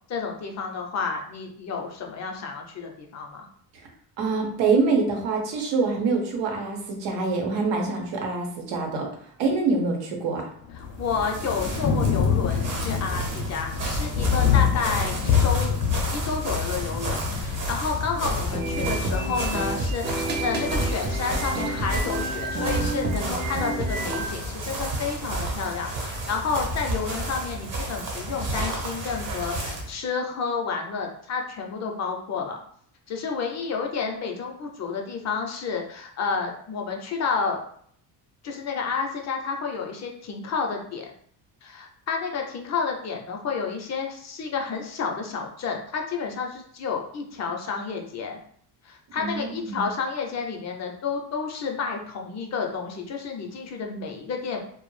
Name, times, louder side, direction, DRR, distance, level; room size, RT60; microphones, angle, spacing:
voice 1, 0.1-3.5 11.0-15.8 16.1-32.6 33.1-37.6 38.4-41.1 41.6-48.4 48.8-54.6, left 5 dB, 40° left, 2 dB, 0.4 m, -30 dB
voice 2, 4.2-9.1 9.4-10.5 49.2-49.9, right 4 dB, 85° right, 1 dB, 0.8 m, -25 dB
Thunder, 10.6-28.6, left 7 dB, 90° left, 0.5 m, -29 dB
sound 1, 10.8-29.9, right 1 dB, 50° right, 0.9 m, -32 dB
sound 2, 18.5-24.3, right 1 dB, 25° right, 0.4 m, -29 dB
2.2 x 2.0 x 3.1 m, 0.63 s
cardioid pair, 115°, 43 cm